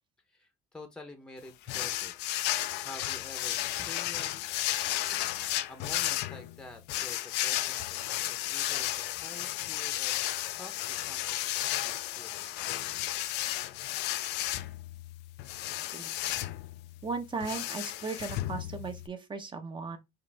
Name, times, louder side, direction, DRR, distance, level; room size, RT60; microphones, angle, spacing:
voice 1, 0.3-2.1 2.8-4.8 5.7-10.2 10.6-12.4, left 2 dB, 5° left, 0.8 m, -49 dB
sound 1, 1.7-19.1, left 15 dB, 85° left, 0.4 m, -33 dB
voice 2, 17.0-20.0, right 4 dB, 30° right, 1.0 m, -37 dB
4.9 x 2.5 x 3.4 m
cardioid pair, 110°, 17 cm